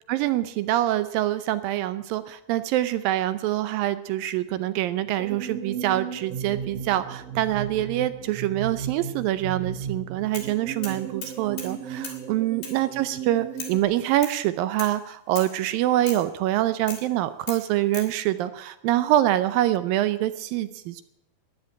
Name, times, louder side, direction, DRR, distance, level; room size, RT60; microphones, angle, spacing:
voice 1, 0.1-21.0, right 14 dB, 80° right, 13 dB, 2.2 m, -25 dB
sound 1, 5.2-13.8, right 7 dB, 50° right, 2.4 m, -35 dB
sound 2, 10.4-10.5 10.8-11.8 12.0-12.2 12.6-12.8 13.6-13.8 14.2-14.4 14.8-15.0 15.4-15.6 16.1-16.3 16.9-17.1 17.5-18.1, left 5 dB, 85° left, 5.3 m, -38 dB
14.0 x 10.5 x 8.5 m, 0.83 s
omnidirectional pair, 4.4 m